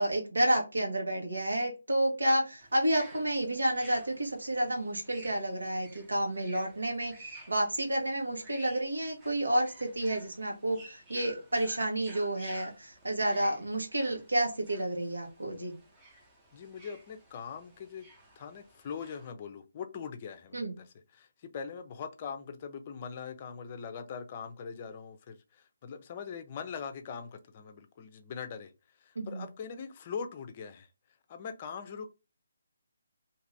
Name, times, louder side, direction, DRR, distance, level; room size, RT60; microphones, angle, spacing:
voice 1, 0.0-15.8 20.5-20.7 29.1-29.5, right 1 dB, 90° right, 1.1 m, -30 dB
sound 1, 2.6-19.3, right 2 dB, 15° right, 0.8 m, -54 dB
voice 2, 16.5-18.1 18.4-20.9 21.1-28.7 29.0-30.9 31.3-32.1, left 6 dB, 35° left, 0.5 m, -42 dB
2.6 x 2.5 x 3.2 m
figure-of-eight pair, 155°, 0 cm